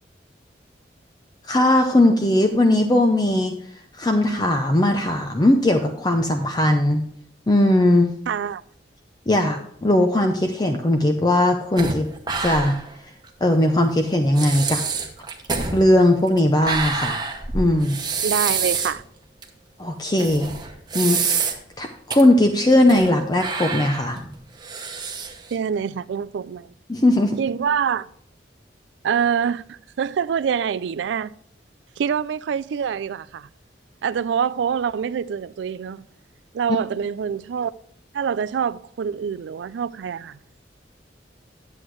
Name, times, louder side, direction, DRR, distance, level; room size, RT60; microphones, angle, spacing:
voice 1, 1.4-3.5 4.0-7.0 7.5-8.1 9.3-12.1 12.4-12.8 13.4-14.8 15.7-17.2 17.5-18.0 19.8-20.5 20.9-24.2 26.9-27.4 36.7-36.8, left 1 dB, 25° left, 0.6 m, -19 dB
voice 2, 8.3-8.6 18.2-19.0 25.5-26.7 27.4-28.1 29.0-31.3 32.0-33.5 34.0-36.0 36.5-37.7 38.1-40.4, right 7 dB, 80° right, 0.3 m, -25 dB
sound 1, 11.8-12.9 13.2-13.3 14.0-14.1 14.4-19.0 19.4-19.5 20.2-21.7 22.1-22.2 22.7-23.1 23.4-25.5, right 5 dB, 25° right, 1.0 m, -27 dB
10.5 x 7.7 x 3.1 m
head